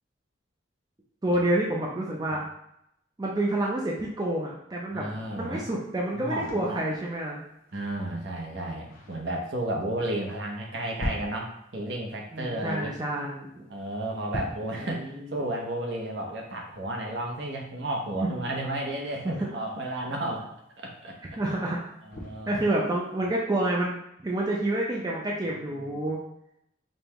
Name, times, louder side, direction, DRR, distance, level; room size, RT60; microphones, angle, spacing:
voice 1, 1.2-2.5 3.2-5.1 5.4-7.4 12.3-13.6 15.0-15.3 18.2-18.5 19.2-19.5 21.4-21.8 22.5-24.0 24.2-26.2, right 1 dB, 20° right, -3 dB, 0.4 m, -28 dB
voice 2, 4.9-5.6 6.1-6.8 7.7-12.9 13.7-21.2 22.0-22.6 25.5-25.7 25.9-26.0, right 1 dB, 60° right, 0 dB, 0.7 m, -33 dB
sound 1, 5.3-23.3, left 1 dB, 45° left, 0.7 m, -45 dB
5.2 x 2.2 x 2.9 m, 0.76 s
head